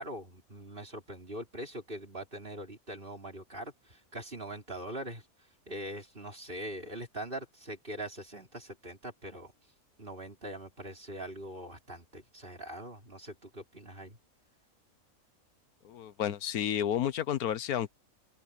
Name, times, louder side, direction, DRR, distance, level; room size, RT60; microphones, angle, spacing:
voice 1, 0.0-5.2 5.7-9.5 10.0-14.2, right 1 dB, 35° right, 5.4 m, -42 dB
voice 2, 15.8-17.9, left 10 dB, 85° left, 1.4 m, -31 dB
open air
omnidirectional pair, 1.5 m